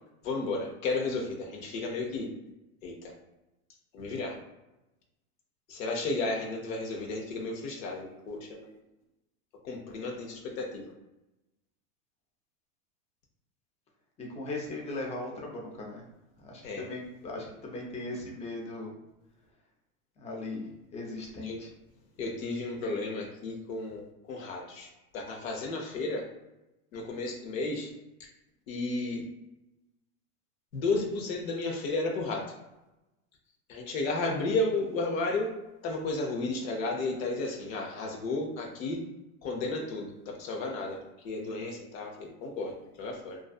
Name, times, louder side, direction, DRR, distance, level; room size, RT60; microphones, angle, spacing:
voice 1, 0.2-2.3 2.8-3.1 3.9-4.4 5.7-8.7 9.6-10.8 16.6-16.8 21.4-21.6 22.2-26.2 26.9-27.9 28.2-28.3 28.7-29.2 30.7-32.4 33.7-35.5 35.8-39.0 39.4-41.0 41.2-43.4, left 2 dB, 70° left, 0 dB, 0.7 m, -33 dB
voice 2, 14.2-16.0 16.4-18.9 20.2-21.7, left 2 dB, 15° left, -1 dB, 0.5 m, -38 dB
2.5 x 2.3 x 2.3 m, 0.97 s
hypercardioid pair, 110°, 43 cm